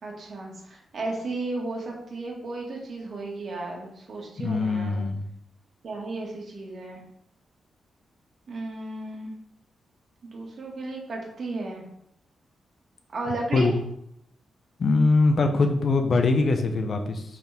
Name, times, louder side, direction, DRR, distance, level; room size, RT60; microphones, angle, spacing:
voice 1, 0.0-5.0 5.8-7.0 8.5-9.4 10.2-11.8 13.1-13.8, right 2 dB, 55° right, -1 dB, 2.0 m, -34 dB
voice 2, 4.4-5.2 13.5-13.7 14.8-17.2, left 3 dB, 50° left, 6 dB, 0.9 m, -22 dB
6.3 x 5.9 x 3.6 m, 0.72 s
wide cardioid pair, 135°, 0 cm